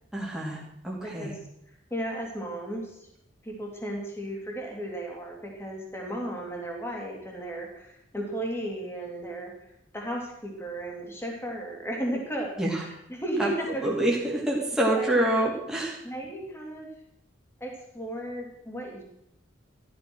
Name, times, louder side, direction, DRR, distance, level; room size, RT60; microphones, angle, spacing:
voice 1, 0.1-1.3 12.6-12.8 13.4-13.5 13.8-16.0, right 1 dB, 5° right, -4 dB, 2.9 m, -27 dB
voice 2, 1.0-1.3 1.9-3.0 3.4-9.5 9.9-13.9 15.0-15.3 16.0-16.9 17.6-19.0, right 1 dB, 10° left, 0 dB, 3.1 m, -34 dB
13.5 x 12.0 x 6.3 m, 0.79 s
head